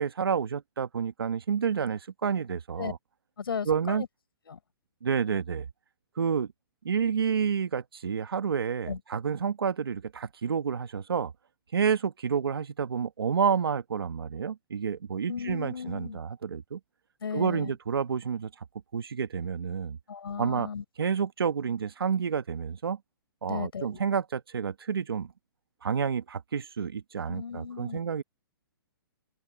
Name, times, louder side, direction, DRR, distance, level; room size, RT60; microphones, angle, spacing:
voice 1, 0.0-3.0 3.6-4.0 5.0-5.7 6.2-6.5 6.8-11.3 11.7-16.8 17.3-18.5 18.9-20.0 20.4-20.7 21.0-23.0 23.4-25.3 25.8-28.2, right 6 dB, 85° right, 1.6 m, -29 dB
voice 2, 3.4-4.1 4.5-4.6 8.9-9.0 15.3-16.2 17.2-17.8 20.1-20.8 23.5-24.0 27.3-28.0, left 6 dB, 80° left, 6.6 m, -35 dB
open air
hypercardioid pair, 135°, 12 cm